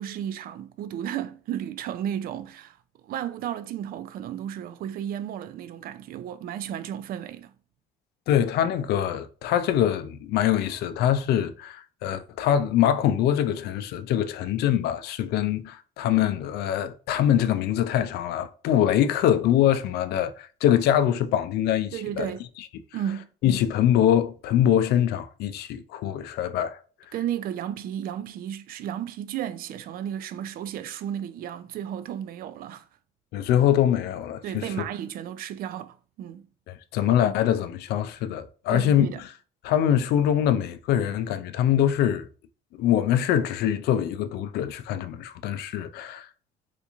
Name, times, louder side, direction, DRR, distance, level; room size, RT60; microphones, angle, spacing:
voice 1, 0.0-2.8 3.0-7.5 21.9-22.4 22.9-23.3 27.1-32.9 34.4-36.4 38.7-39.2, right 10 dB, 60° right, 0.4 m, -33 dB
voice 2, 8.3-22.3 23.4-26.8 27.1-27.2 33.3-34.7 36.7-39.3 39.6-42.3 42.8-46.3, left 10 dB, 75° left, 0.4 m, -24 dB
2.9 x 2.5 x 3.5 m
cardioid pair, 110°, 17 cm